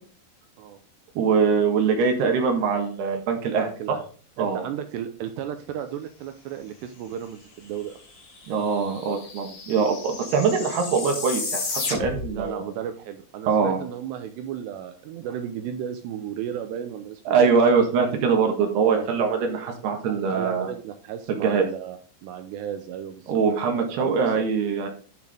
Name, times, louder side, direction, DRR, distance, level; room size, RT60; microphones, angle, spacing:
voice 1, 1.2-3.7 4.4-4.6 8.5-12.6 13.5-13.8 17.3-20.7 21.4-21.6 23.3-24.9, right 5 dB, 65° right, 3 dB, 3.2 m, -23 dB
voice 2, 3.5-4.0 4.4-8.0 12.3-17.5 18.8-19.1 20.1-23.3 23.9-24.4, right 9 dB, 80° right, 7 dB, 2.5 m, -34 dB
sound 1, 7.9-8.0 8.2-12.4, left 3 dB, 80° left, 5.4 m, -33 dB
10.5 x 6.0 x 3.6 m, 0.40 s
omnidirectional pair, 5.8 m